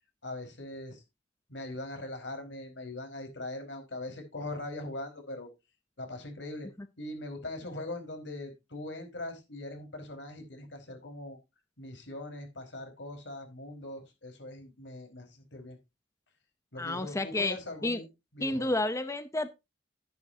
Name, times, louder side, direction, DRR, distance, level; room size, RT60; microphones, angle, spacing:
voice 1, 0.2-1.0 1.5-5.5 6.0-6.7 7.0-11.4 11.8-15.8 16.7-18.1 18.3-18.8, left 2 dB, 85° left, 4 dB, 4.7 m, -41 dB
voice 2, 16.8-17.6 17.8-18.0 18.4-19.5, left 2 dB, 15° left, 10 dB, 0.7 m, -30 dB
12.0 x 10.5 x 2.8 m, 0.24 s
head